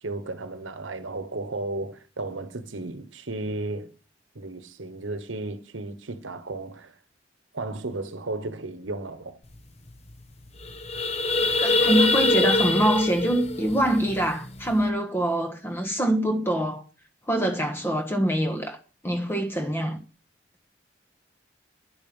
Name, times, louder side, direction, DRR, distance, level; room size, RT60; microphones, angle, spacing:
voice 1, 0.0-3.9 4.3-7.0 7.5-9.4, right 2 dB, 85° right, 1.2 m, -34 dB
sound 1, 9.6-9.7 9.9-10.1 10.5-14.8, left 2 dB, 35° left, 1.0 m, -24 dB
voice 2, 11.4-16.8 17.3-18.8 19.0-20.0, right 1 dB, 10° left, 1.4 m, -24 dB
11.0 x 7.0 x 5.5 m
head